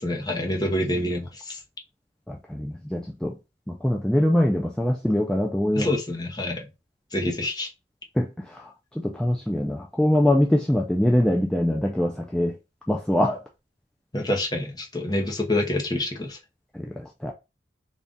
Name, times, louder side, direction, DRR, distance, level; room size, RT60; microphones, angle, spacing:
voice 1, 0.0-1.6 5.7-6.6 7.1-7.7 14.1-16.4, left 1 dB, 20° left, 0.7 m, -27 dB
voice 2, 2.3-3.3 3.8-5.9 8.2-8.6 9.0-12.5 12.9-13.4 16.8-17.3, left 1 dB, 5° left, 0.4 m, -23 dB
3.9 x 2.4 x 3.6 m
head